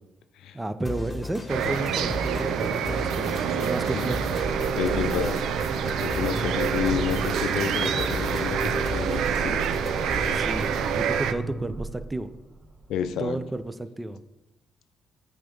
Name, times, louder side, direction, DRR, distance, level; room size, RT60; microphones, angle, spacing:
voice 1, 0.5-4.3 10.3-10.7 10.9-12.3 13.2-14.2, right 2 dB, 15° right, 12 dB, 0.4 m, -32 dB
sound 1, 0.8-10.9, equal, 15° left, 1.3 m, -34 dB
sound 2, 1.5-11.3, right 8 dB, 80° right, 0.4 m, -27 dB
voice 2, 3.9-4.2 4.8-5.5 6.0-9.6 12.9-13.4, left 8 dB, 85° left, 10 dB, 0.5 m, -30 dB
sound 3, 4.4-13.6, right 2 dB, 40° right, 0.9 m, -37 dB
8.7 x 3.5 x 5.3 m, 0.97 s
cardioid pair, 90°, 0 cm